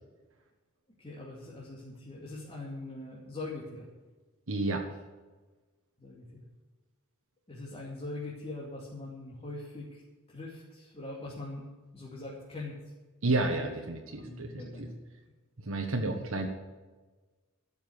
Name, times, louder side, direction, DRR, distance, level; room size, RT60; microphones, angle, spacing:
voice 1, 1.0-3.9 6.0-6.5 7.5-10.0 10.3-11.7 11.9-12.8 13.5-13.8 14.1-14.9, left 2 dB, 25° left, -5 dB, 2.5 m, -42 dB
voice 2, 4.5-4.8 13.2-14.5 14.8-14.9 15.7-16.5, right 2 dB, 70° right, 2 dB, 1.3 m, -30 dB
12.5 x 7.3 x 8.7 m, 1.3 s
head